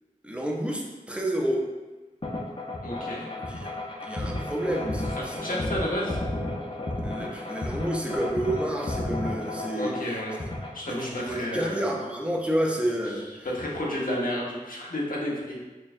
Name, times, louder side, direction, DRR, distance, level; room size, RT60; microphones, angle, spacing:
voice 1, 0.2-1.7 3.3-3.7 4.0-5.7 7.0-10.2 10.9-13.5 13.8-14.2, right 1 dB, 10° right, -1 dB, 0.6 m, -30 dB
sound 1, 2.2-11.1, left 1 dB, 35° left, 0.7 m, -33 dB
voice 2, 2.8-3.3 5.3-6.2 9.7-10.4 10.7-12.0 13.4-15.6, left 1 dB, 75° left, -4 dB, 0.9 m, -31 dB
4.4 x 3.1 x 2.5 m, 1.2 s
wide cardioid pair, 50°, 14 cm